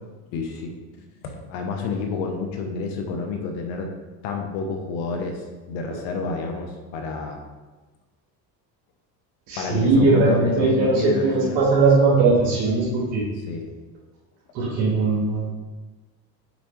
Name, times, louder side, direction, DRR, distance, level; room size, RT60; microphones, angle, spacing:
voice 1, 0.3-0.7 1.2-3.9 4.2-5.4 5.7-7.4 9.6-11.6 13.5-13.7, left 4 dB, 70° left, 3 dB, 1.0 m, -29 dB
voice 2, 9.5-13.2 14.5-15.5, right 3 dB, 70° right, -6 dB, 1.7 m, -19 dB
6.4 x 5.1 x 3.1 m, 1.2 s
hypercardioid pair, 70°, 49 cm